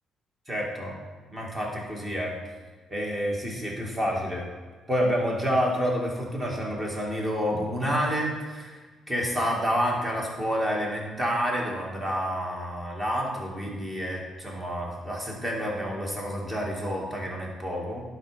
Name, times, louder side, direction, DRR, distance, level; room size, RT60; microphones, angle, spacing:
voice 1, 0.5-1.0 1.3-2.3 2.9-4.5 4.9-8.8 9.1-18.0, equal, 20° right, -2 dB, 2.4 m, -29 dB
11.5 x 4.3 x 5.2 m, 1.3 s
cardioid pair, 90°, 0 cm